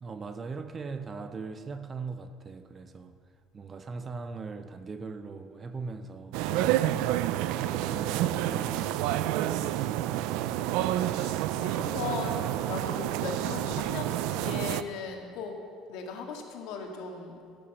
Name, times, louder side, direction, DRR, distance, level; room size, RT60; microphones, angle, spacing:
voice 1, 0.0-3.2 3.5-6.4 7.5-10.8, right 4 dB, 25° right, 0.6 m, -40 dB
sound 1, 6.3-14.8, right 13 dB, 80° right, 0.4 m, -29 dB
voice 2, 6.5-7.0 11.1-15.6 15.9-17.4, left 5 dB, 75° left, 2.0 m, -38 dB
15.5 x 7.1 x 6.9 m
cardioid pair, 145°, 0 cm